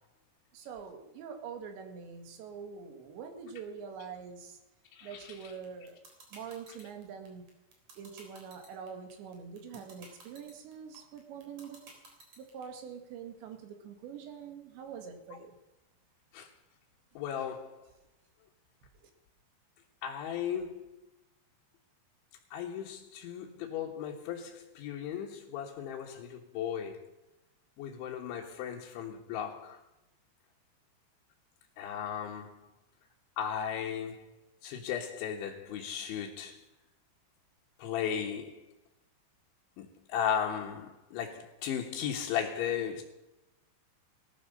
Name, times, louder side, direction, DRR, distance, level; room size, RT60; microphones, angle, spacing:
voice 1, 0.5-4.6 5.0-6.0 6.3-7.4 8.0-11.9 12.4-15.6, right 6 dB, 75° right, 4.2 m, -45 dB
voice 2, 4.9-5.5 16.3-16.5 17.2-17.8 20.0-20.9 22.5-27.1 27.8-29.8 31.8-32.7 33.4-34.3 34.6-36.6 37.8-38.6 39.8-43.0, left 8 dB, 90° left, 3.8 m, -36 dB
sound 1, 5.6-12.6, right 3 dB, 40° right, 4.5 m, -52 dB
18.5 x 11.5 x 6.7 m
omnidirectional pair, 5.2 m